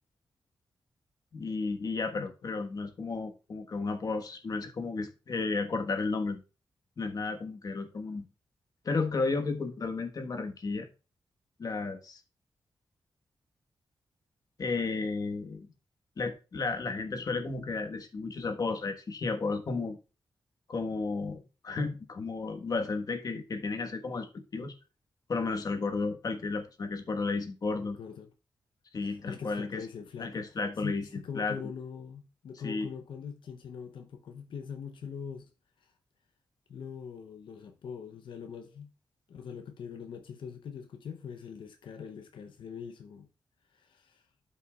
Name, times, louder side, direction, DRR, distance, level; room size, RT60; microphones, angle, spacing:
voice 1, 1.3-6.4 7.0-8.2 8.8-10.9 11.6-12.2 14.6-15.7 16.2-20.0 20.7-24.7 25.3-28.0 28.9-29.8 30.2-31.1 31.3-31.6 32.6-32.9, left 3 dB, 50° left, 1.3 m, -33 dB
voice 2, 2.1-2.6 27.8-28.3 29.0-35.4 35.8-35.9 36.7-38.9 39.3-43.3 43.7-44.3, left 7 dB, 90° left, 0.7 m, -43 dB
12.0 x 5.6 x 2.3 m
wide cardioid pair, 110°, 8 cm